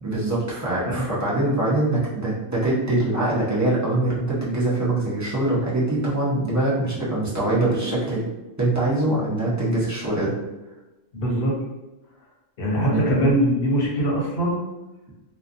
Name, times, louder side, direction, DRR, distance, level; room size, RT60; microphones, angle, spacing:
voice 1, 0.0-8.2 8.6-10.3 12.8-13.2, right 2 dB, 30° right, -7 dB, 0.3 m, -23 dB
voice 2, 11.1-11.5 12.6-14.6, right 1 dB, 55° left, -2 dB, 0.8 m, -22 dB
2.5 x 2.2 x 2.5 m, 1.0 s
omnidirectional pair, 1.3 m